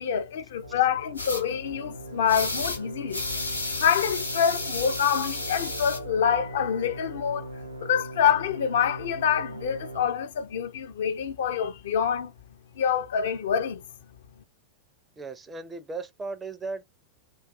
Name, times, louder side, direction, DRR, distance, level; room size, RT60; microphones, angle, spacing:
voice 1, 0.0-3.2 3.8-7.5 7.8-12.3 12.8-13.8, left 8 dB, 60° left, 0.4 m, -26 dB
sound 1, 0.6-10.0, right 1 dB, 85° right, 0.5 m, -40 dB
sound 2, 1.2-1.4 2.3-2.8 3.1-6.0, left 2 dB, 80° left, 0.8 m, -32 dB
voice 2, 15.2-16.8, right 3 dB, 15° right, 0.4 m, -36 dB
2.5 x 2.3 x 2.3 m
figure-of-eight pair, 90°, 0 cm